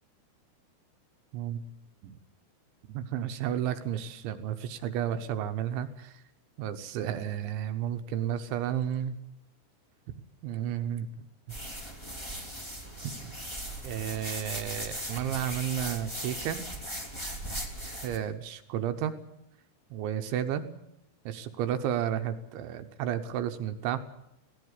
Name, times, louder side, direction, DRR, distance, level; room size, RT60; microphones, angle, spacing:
voice 1, 2.9-6.2 6.6-9.2 10.4-11.6 13.8-16.6 18.0-19.1 19.9-20.7 21.3-24.0, right 10 dB, 75° right, 8 dB, 3.2 m, -32 dB
sound 1, 11.5-18.2, equal, 10° left, 1.9 m, -38 dB
18.5 x 17.5 x 9.8 m, 0.81 s
omnidirectional pair, 5.9 m